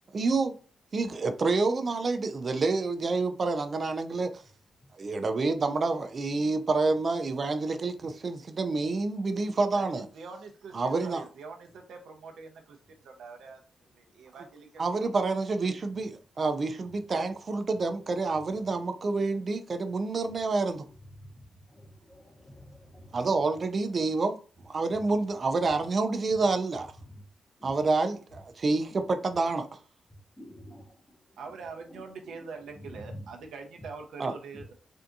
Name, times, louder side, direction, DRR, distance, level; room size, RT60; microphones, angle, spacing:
voice 1, 0.1-0.5 0.9-4.4 5.0-10.0 10.7-11.2 14.8-20.8 23.1-24.4 24.6-26.9 27.6-29.7 34.2-34.3, right 3 dB, 35° right, 0.3 m, -28 dB
voice 2, 9.7-13.6 13.9-15.1 31.4-34.7, right 4 dB, 90° right, 0.5 m, -44 dB
voice 3, 21.7-23.2 27.6-27.7 30.4-30.9, equal, 15° left, 0.6 m, -50 dB
3.4 x 2.7 x 2.5 m
wide cardioid pair, 180°, 0 cm